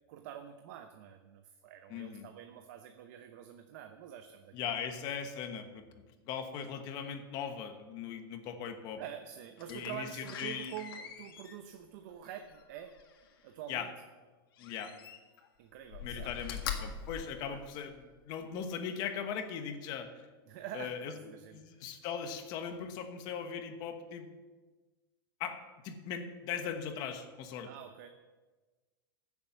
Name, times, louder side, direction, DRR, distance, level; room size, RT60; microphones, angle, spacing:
voice 1, 0.1-4.6 9.0-12.9 13.4-13.9 15.6-16.6 17.5-17.6 20.5-21.9 27.6-28.1, right 10 dB, 50° right, 7 dB, 0.8 m, -47 dB
voice 2, 1.9-2.3 4.5-5.8 6.3-9.0 9.7-10.7 13.7-13.9 14.6-14.9 16.0-20.3 20.7-21.1 21.5-24.3 25.4-27.7, left 7 dB, 35° left, 7 dB, 1.2 m, -39 dB
Slam, 9.6-13.4 14.5-15.5 15.8-18.1 18.6-18.7, left 8 dB, 70° left, 1.8 m, -44 dB
15.5 x 7.3 x 5.6 m, 1.3 s
supercardioid pair, 165°, 12 cm